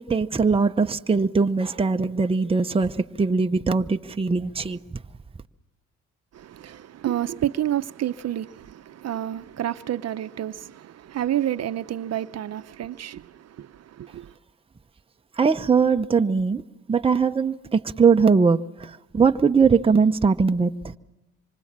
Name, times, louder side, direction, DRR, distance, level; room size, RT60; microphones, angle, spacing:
voice 1, 0.0-4.8 15.4-16.6 16.9-20.9, right 5 dB, 20° right, 0.8 m, -21 dB
voice 2, 6.3-14.3, right 11 dB, 55° right, 0.8 m, -29 dB
26.0 x 24.5 x 7.4 m
cardioid pair, 90°, 30 cm